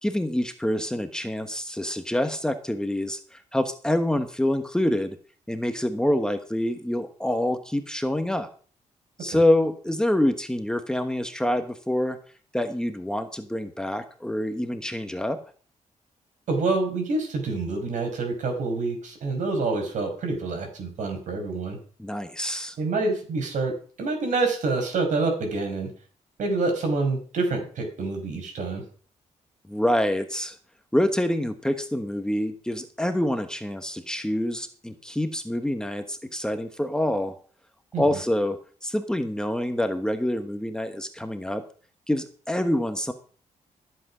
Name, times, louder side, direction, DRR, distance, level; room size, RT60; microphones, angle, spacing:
voice 1, 0.0-5.2 5.5-8.5 9.2-12.2 12.5-15.4 22.0-22.8 29.7-30.6 30.9-37.3 38.0-38.6 38.8-41.6 42.1-43.1, left 1 dB, 5° left, 7 dB, 1.2 m, -26 dB
voice 2, 16.5-21.8 22.8-25.9 26.4-28.8 37.9-38.0, right 3 dB, 75° right, 4 dB, 5.4 m, -27 dB
14.0 x 8.0 x 6.1 m, 0.41 s
cardioid pair, 120°, 13 cm